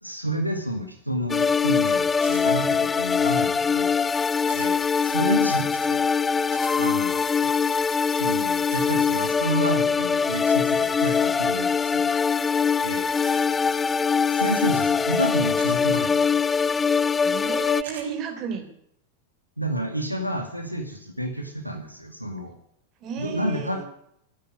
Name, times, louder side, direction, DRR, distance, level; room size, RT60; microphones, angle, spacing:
voice 1, 0.0-3.9 4.5-6.0 6.8-7.5 8.1-12.1 12.8-13.1 14.3-16.3 19.6-22.6 23.2-23.8, equal, 90° right, 4 dB, 2.2 m, -30 dB
sound 1, 1.3-17.8, left 6 dB, 15° left, 0.5 m, -23 dB
sound 2, 2.2-2.5 4.5-4.7 6.5-6.7 8.7-8.9 11.0-11.3 13.2-13.5 15.6-15.8 17.8-18.1, right 5 dB, 60° right, 5.4 m, -42 dB
voice 2, 17.2-18.6 23.0-23.8, right 7 dB, 35° right, 4 dB, 3.9 m, -33 dB
14.0 x 9.8 x 9.9 m, 0.70 s
figure-of-eight pair, 90°, 0 cm